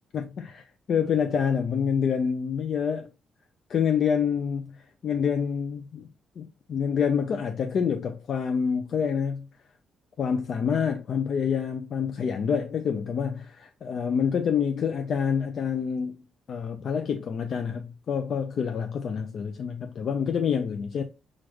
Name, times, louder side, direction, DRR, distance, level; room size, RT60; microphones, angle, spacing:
voice 1, 0.1-3.1 3.7-4.8 5.0-6.1 6.4-9.5 10.2-21.0, left 7 dB, 55° left, 0.5 m, -27 dB
6.0 x 2.5 x 3.1 m
cardioid pair, 90°, 0 cm